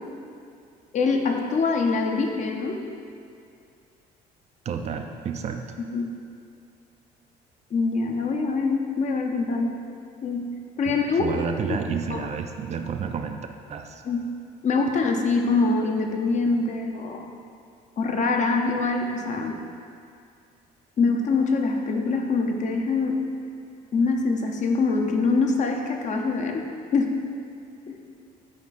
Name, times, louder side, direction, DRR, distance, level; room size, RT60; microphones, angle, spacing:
voice 1, 0.9-2.8 5.9-6.1 7.7-9.7 10.2-10.5 10.8-11.3 12.1-12.2 14.0-14.3 14.6-17.3 18.0-19.6 21.0-23.2 23.9-26.7 26.9-27.2 27.9-28.0, left 4 dB, 45° left, 3 dB, 0.7 m, -24 dB
voice 2, 4.6-5.8 10.9-14.0, right 6 dB, 40° right, 6 dB, 0.4 m, -31 dB
8.6 x 3.5 x 4.1 m, 2.4 s
cardioid pair, 110°, 17 cm